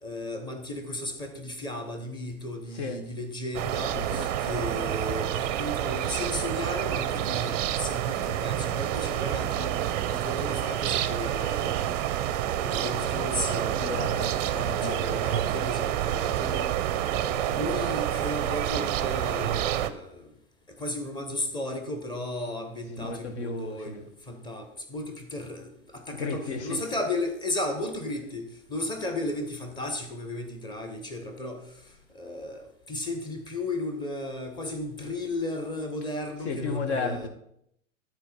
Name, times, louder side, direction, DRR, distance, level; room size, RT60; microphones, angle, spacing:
voice 1, 0.0-12.0 12.6-14.1 14.7-16.7 17.1-20.3 20.8-31.6 32.1-37.3, left 2 dB, 10° left, 1.3 m, -35 dB
voice 2, 2.7-3.2 3.8-4.5 13.6-15.5 22.9-24.1 26.1-26.9 36.4-37.3, left 3 dB, 55° left, 1.6 m, -34 dB
sound 1, 3.5-19.9, right 11 dB, 30° right, 0.6 m, -28 dB
13.0 x 4.6 x 5.6 m
figure-of-eight pair, 105°, 41 cm